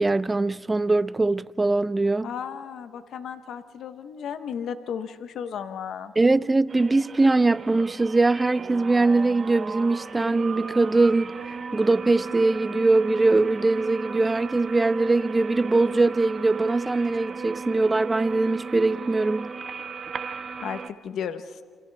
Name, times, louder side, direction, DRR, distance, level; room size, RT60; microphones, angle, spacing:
voice 1, 0.0-2.3 6.2-19.5, right 3 dB, 20° right, 0.6 m, -22 dB
voice 2, 2.2-6.1 20.6-21.6, left 7 dB, 70° left, 0.9 m, -34 dB
sound 1, 6.7-20.9, right 5 dB, 45° right, 1.2 m, -36 dB
29.0 x 27.0 x 3.4 m
cardioid pair, 90°, 0 cm